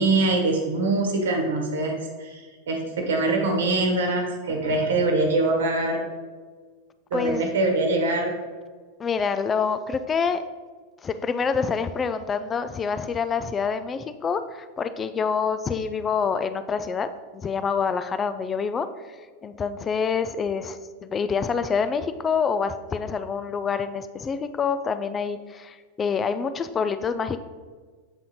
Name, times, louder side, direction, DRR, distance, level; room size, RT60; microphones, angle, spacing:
voice 1, 0.0-6.0 7.1-8.3, right 2 dB, 60° right, 2 dB, 1.1 m, -23 dB
voice 2, 7.1-7.5 9.0-10.4 11.0-19.2 19.4-27.4, left 5 dB, 20° left, 11 dB, 0.3 m, -27 dB
7.7 x 4.1 x 4.0 m, 1.5 s
figure-of-eight pair, 90°, 0 cm